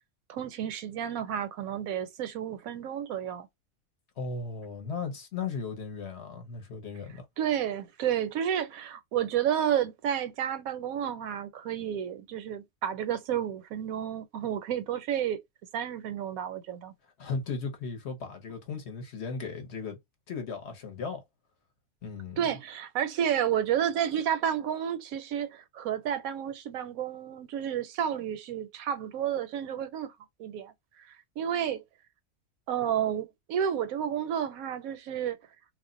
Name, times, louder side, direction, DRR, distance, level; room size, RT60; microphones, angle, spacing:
voice 1, 0.3-3.5 7.4-15.4 15.7-16.9 22.4-30.1 30.4-30.7 31.4-31.8 32.7-35.4, right 9 dB, 80° right, 1.0 m, -31 dB
voice 2, 4.2-7.3 17.2-20.0 20.3-21.2 22.0-22.4, left 4 dB, 55° left, 0.9 m, -36 dB
2.5 x 2.0 x 3.7 m
omnidirectional pair, 1.5 m